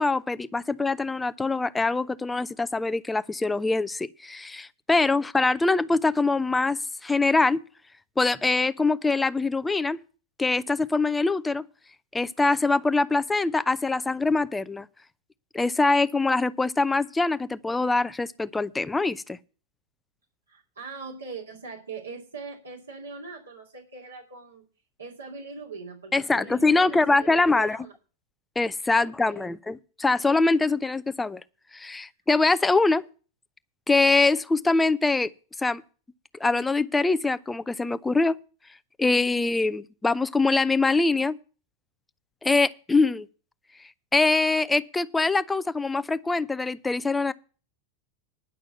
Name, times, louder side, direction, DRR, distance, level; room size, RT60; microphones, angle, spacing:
voice 1, 0.0-7.6 8.2-10.0 10.4-11.6 12.1-14.9 15.5-19.4 26.1-27.9 28.6-31.4 31.7-33.0 33.9-35.3 35.6-35.8 36.4-38.3 39.0-41.4 42.4-43.3 44.1-47.3, left 3 dB, 10° left, 0.6 m, -23 dB
voice 2, 20.5-24.6 25.0-27.9 28.9-29.5, right 4 dB, 75° right, 2.5 m, -41 dB
10.5 x 6.1 x 8.9 m
figure-of-eight pair, 90°, 0 cm